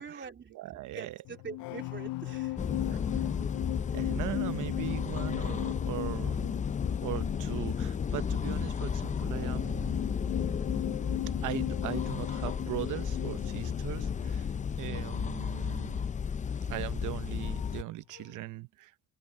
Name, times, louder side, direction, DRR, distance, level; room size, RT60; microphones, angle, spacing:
voice 1, 0.0-0.6 0.9-2.6, right 5 dB, 40° right, 3.1 m, -43 dB
voice 2, 0.5-1.2 2.9-3.0 3.9-6.5 7.0-9.9 11.4-14.5 14.8-16.0 16.7-18.9, right 16 dB, 85° right, 0.8 m, -39 dB
sound 1, 1.2-17.9 18.2-18.5, left 18 dB, 85° left, 0.5 m, -39 dB
sound 2, 2.6-17.8, left 6 dB, 25° left, 0.5 m, -33 dB
open air
cardioid pair, 90°, 30 cm